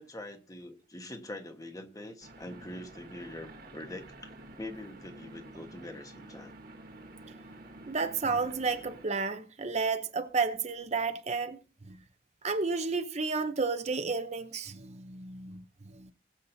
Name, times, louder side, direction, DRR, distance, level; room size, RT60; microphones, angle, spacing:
voice 1, 0.0-6.5, left 1 dB, 20° left, 1.2 m, -44 dB
sound 1, 2.2-9.1, right 2 dB, 55° right, 1.7 m, -50 dB
voice 2, 7.9-11.6 11.9-12.0 12.4-16.1, right 4 dB, 35° right, 0.7 m, -32 dB
20.0 x 7.3 x 2.7 m
head